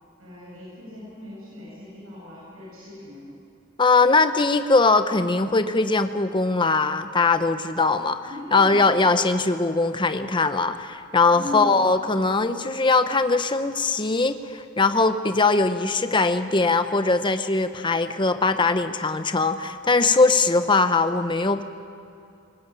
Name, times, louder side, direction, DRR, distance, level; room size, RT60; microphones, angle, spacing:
voice 1, 0.2-3.3 8.2-9.0 11.3-11.9, left 1 dB, 80° right, -6 dB, 7.9 m, -38 dB
voice 2, 3.8-8.2 8.5-21.6, left 3 dB, 25° left, 9 dB, 0.8 m, -21 dB
20.0 x 18.5 x 9.1 m, 2.5 s
head